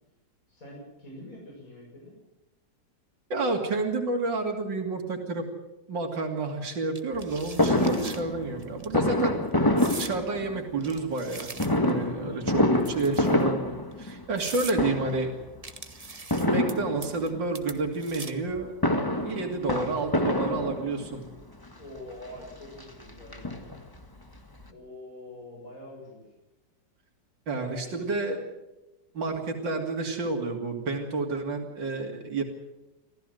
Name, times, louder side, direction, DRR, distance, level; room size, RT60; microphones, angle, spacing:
voice 1, 0.5-2.1 12.1-12.5 21.8-23.5 24.7-26.2 27.5-28.2, left 1 dB, 45° left, -3 dB, 8.0 m, -45 dB
voice 2, 3.3-5.4 5.9-9.4 10.0-11.5 11.8-12.6 12.9-15.3 16.4-18.7 19.2-21.2 27.5-28.4 29.1-32.4, right 3 dB, 80° right, 3 dB, 3.4 m, -30 dB
sound 1, 7.0-8.2 8.6-8.9 9.8-10.2 10.8-12.0 12.8-13.4 13.9-14.0 14.4-14.8 15.6-16.7 17.0-17.3 17.6-18.5, right 3 dB, 25° right, 1.2 m, -41 dB
Fireworks, 7.6-10.8 11.6-14.5 14.7-15.4 16.3-17.4 18.5-21.2 22.0-22.1 22.4-22.5 22.8-24.0 24.4-24.5 24.6-24.7, left 1 dB, 15° left, 1.5 m, -26 dB
26.0 x 16.0 x 7.9 m, 1.0 s
omnidirectional pair, 2.0 m